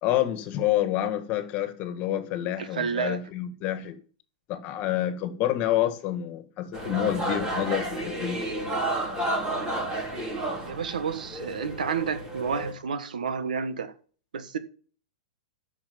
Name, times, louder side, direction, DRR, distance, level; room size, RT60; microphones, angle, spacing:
voice 1, 0.0-4.0 4.5-8.4, left 12 dB, 35° left, 2.0 m, -28 dB
voice 2, 2.6-3.2 10.7-13.9 14.3-14.6, right 6 dB, 90° right, 1.4 m, -30 dB
sound 1, 6.7-12.7, right 1 dB, 20° right, 3.9 m, -31 dB
10.5 x 6.5 x 7.2 m
hypercardioid pair, 135°, 4 cm